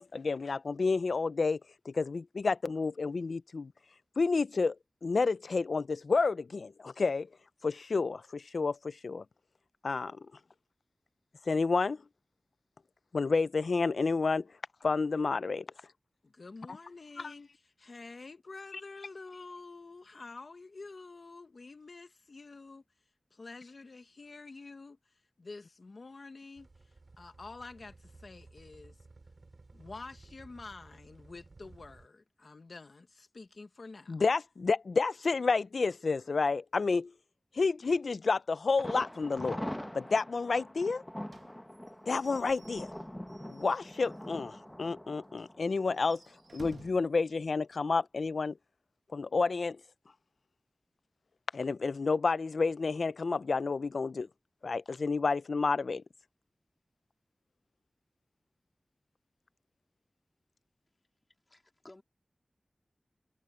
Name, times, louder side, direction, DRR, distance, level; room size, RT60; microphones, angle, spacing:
voice 1, 0.0-1.6 1.9-3.7 4.2-4.8 5.0-7.3 7.6-9.2 9.8-10.2 11.5-12.0 13.1-14.5 14.8-15.7 17.2-17.3 34.1-37.1 37.5-41.0 42.1-42.9 43.5-46.2 46.5-48.6 49.1-49.8 51.5-54.3 54.6-56.0, left 4 dB, 80° left, 0.5 m, -30 dB
voice 2, 16.2-22.8 23.3-29.0 29.7-34.2, left 3 dB, 65° left, 1.2 m, -48 dB
sound 1, 26.6-32.1, right 3 dB, 55° right, 4.1 m, -56 dB
Thunder, 38.8-46.6 46.9-47.0 47.4-47.5, equal, 10° left, 1.1 m, -43 dB
Slam / Squeak / Wood, 41.3-44.5 44.8-44.9 45.2-45.3 45.8-47.1, right 4 dB, 80° right, 1.4 m, -55 dB
voice 3, 61.5-62.0, left 2 dB, 30° left, 3.5 m, -55 dB
wide cardioid pair, 85°, 0 cm